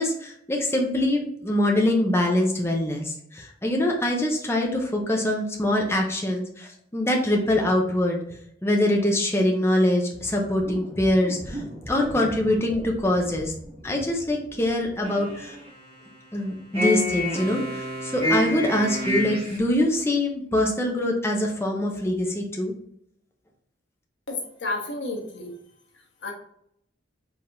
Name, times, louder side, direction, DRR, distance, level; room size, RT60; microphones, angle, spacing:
voice 1, 0.0-8.2 8.6-13.5 13.8-15.6 16.3-22.7, left 1 dB, 15° left, 0 dB, 0.7 m, -24 dB
sound 1, 10.6-14.6 15.0-15.9 16.7-19.6, left 1 dB, 35° right, 1.6 m, -30 dB
voice 2, 24.3-25.5 26.2-26.3, left 2 dB, 90° left, 0 dB, 1.3 m, -31 dB
4.6 x 3.5 x 2.6 m, 0.70 s
head